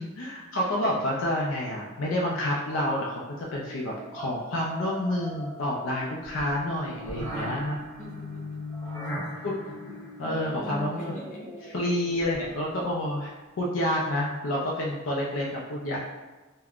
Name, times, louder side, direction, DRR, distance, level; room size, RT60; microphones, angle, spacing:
voice 1, 0.0-7.8 9.4-9.8 10.2-11.2 11.7-16.0, left 1 dB, 70° left, -3 dB, 0.4 m, -29 dB
sound 1, 3.6-12.7, equal, 15° left, 0.9 m, -39 dB
voice 2, 6.7-8.6 9.0-10.1 10.5-11.4, equal, 40° left, -5 dB, 0.7 m, -46 dB
2.4 x 2.1 x 3.4 m, 1.2 s
head